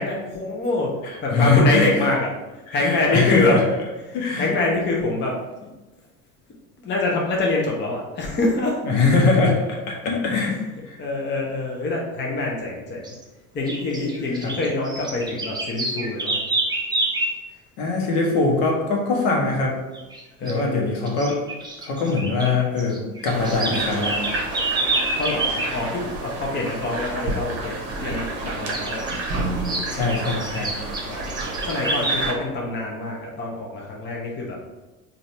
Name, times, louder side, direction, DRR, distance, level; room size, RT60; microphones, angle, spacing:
voice 1, 0.0-3.6 4.1-5.7 6.8-8.9 10.5-10.6 11.0-13.1 13.5-16.4 20.4-20.9 25.2-29.1 31.0-34.6, left 2 dB, 25° left, -2 dB, 0.8 m, -25 dB
voice 2, 1.3-1.9 2.7-3.6 4.1-4.5 8.8-11.0 14.4-14.5 17.8-19.8 20.4-21.4 21.8-24.2 29.9-30.8, left 3 dB, 55° left, -1 dB, 1.1 m, -22 dB
sound 1, 13.0-13.2 13.7-17.4 19.9-20.2 20.5-20.6 21.1-22.5 22.8-25.7 28.7-29.2 29.6-32.2, right 2 dB, 10° right, 0.7 m, -27 dB
sound 2, 23.3-32.3, right 2 dB, 35° right, 1.0 m, -30 dB
4.0 x 2.6 x 3.2 m, 1.1 s
figure-of-eight pair, 70°, 44 cm